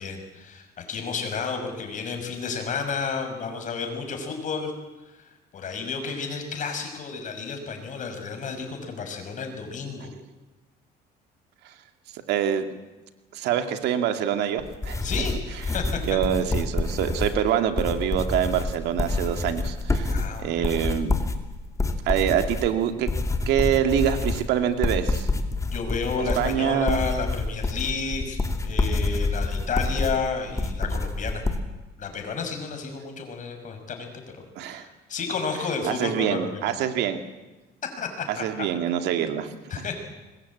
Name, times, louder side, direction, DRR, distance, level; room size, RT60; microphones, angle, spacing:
voice 1, 0.0-4.7 5.1-10.1 15.0-16.0 20.1-20.8 25.7-31.4 32.0-34.1 34.6-36.8 38.0-38.7 39.7-39.9, left 5 dB, 50° left, 5 dB, 5.9 m, -31 dB
voice 2, 12.1-12.7 13.3-15.1 16.0-20.1 20.4-21.1 22.1-23.1 23.5-25.3 26.4-27.0 34.6-34.9 35.8-37.2 38.3-39.5, right 10 dB, 85° right, 7 dB, 2.3 m, -25 dB
sound 1, 14.6-31.6, left 3 dB, 20° left, 2.7 m, -27 dB
25.0 x 21.5 x 8.6 m, 1.1 s
cardioid pair, 110°, 17 cm